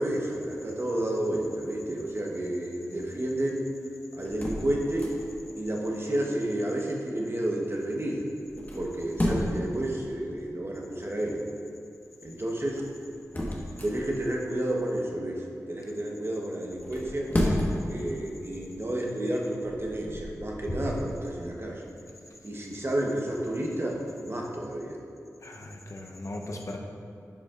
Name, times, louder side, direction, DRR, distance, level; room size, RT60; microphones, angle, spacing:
voice 1, 0.0-3.7 4.1-5.1 5.6-8.2 8.7-11.4 12.2-12.8 13.8-17.3 17.9-21.8 22.4-24.0 24.3-25.0, right 1 dB, 40° right, -1 dB, 1.1 m, -31 dB
sound 1, 4.2-5.5 8.4-9.7 12.6-14.4 16.7-18.0 18.5-18.7 19.4-21.0, left 1 dB, 30° left, 1.3 m, -32 dB
voice 2, 25.4-26.8, left 1 dB, 55° left, 1 dB, 0.8 m, -38 dB
10.0 x 5.0 x 2.5 m, 2.4 s
cardioid pair, 40°, 6 cm